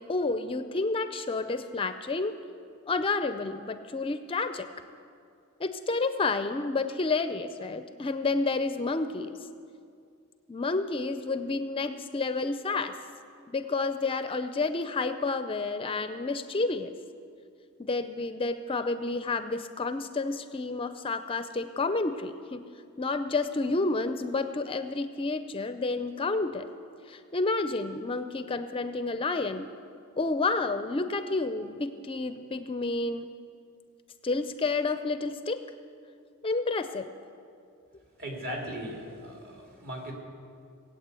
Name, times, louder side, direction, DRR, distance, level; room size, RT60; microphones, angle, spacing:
voice 1, 0.0-2.4 2.9-4.7 5.6-9.4 10.5-13.0 13.5-16.9 17.8-22.7 23.0-26.7 27.1-29.7 30.2-33.3 34.2-35.6 36.4-37.1, left 3 dB, 25° left, 10 dB, 0.5 m, -30 dB
voice 2, 38.2-40.1, equal, 50° right, -1 dB, 3.0 m, -38 dB
18.0 x 8.6 x 8.3 m, 2.4 s
head